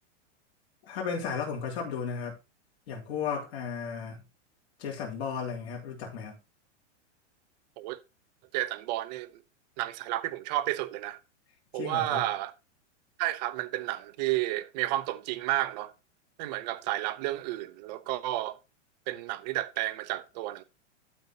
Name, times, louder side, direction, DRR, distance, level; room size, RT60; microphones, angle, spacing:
voice 1, 0.8-2.3 2.9-4.2 4.8-6.4 11.7-12.2, left 6 dB, 60° left, 3.3 m, -34 dB
voice 2, 8.5-9.3 9.8-11.2 11.7-12.5 13.2-15.9 16.4-18.6 19.1-20.6, right 16 dB, 35° right, 0.7 m, -31 dB
12.0 x 4.6 x 3.9 m
supercardioid pair, 160°, 36 cm